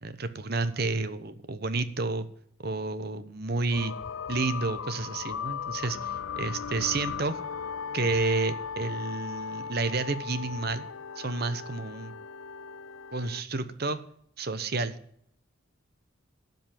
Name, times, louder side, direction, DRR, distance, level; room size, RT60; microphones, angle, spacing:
voice 1, 0.0-2.3 2.6-3.9 4.3-7.4 7.9-10.9 11.2-12.1 13.1-14.0 14.4-15.0, right 3 dB, 50° right, 12 dB, 0.9 m, -30 dB
sound 1, 3.7-13.4, left 6 dB, 70° left, 0.5 m, -37 dB
12.5 x 5.4 x 8.9 m, 0.66 s
head